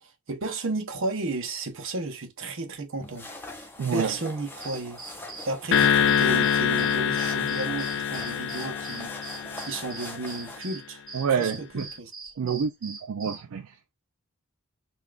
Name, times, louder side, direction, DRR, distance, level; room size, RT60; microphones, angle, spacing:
voice 1, 0.0-3.3 3.9-5.0 5.4-9.1 9.6-11.0 11.4-12.1 12.4-12.6, right 2 dB, 60° right, 0.8 m, -33 dB
sound 1, 3.0-10.6, left 2 dB, 10° left, 0.6 m, -42 dB
voice 2, 3.8-4.1 11.1-11.9 12.4-13.8, right 6 dB, 75° right, 0.4 m, -28 dB
sound 2, 4.6-13.4, right 4 dB, 20° right, 2.6 m, -42 dB
sound 3, 5.7-10.2, left 8 dB, 50° left, 0.3 m, -25 dB
5.4 x 2.4 x 2.4 m
head